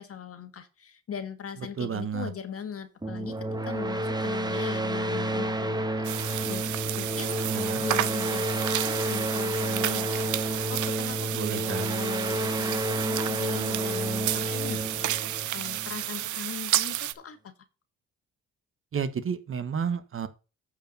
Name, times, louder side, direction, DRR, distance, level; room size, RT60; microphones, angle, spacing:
voice 1, 0.0-15.2 15.5-17.5, left 8 dB, 50° left, 1.7 m, -40 dB
voice 2, 1.8-2.3 7.5-7.8 11.4-11.8 18.9-20.3, right 6 dB, 45° right, 1.1 m, -31 dB
sound 1, 3.0-16.4, right 1 dB, 15° right, 1.2 m, -30 dB
sound 2, 6.0-17.1, right 14 dB, 75° right, 0.7 m, -31 dB
8.8 x 4.8 x 5.3 m
cardioid pair, 90°, 30 cm